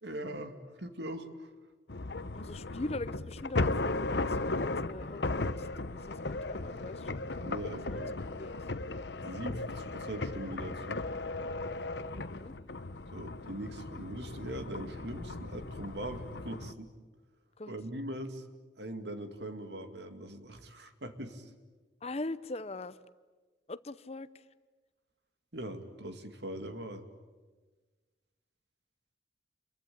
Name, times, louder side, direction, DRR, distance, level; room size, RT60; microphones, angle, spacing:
voice 1, 0.0-1.5 7.4-8.2 9.2-11.1 13.1-16.9 17.7-18.4 18.8-21.4 25.5-27.1, right 1 dB, 75° right, 7 dB, 2.4 m, -41 dB
sound 1, 1.9-16.7, left 2 dB, 75° left, 1.0 m, -36 dB
voice 2, 2.3-7.3 7.9-8.6 12.1-12.5 17.6-17.7 22.0-23.0 23.7-24.4, left 2 dB, 35° left, 15 dB, 0.7 m, -41 dB
28.5 x 23.0 x 8.6 m, 1.3 s
head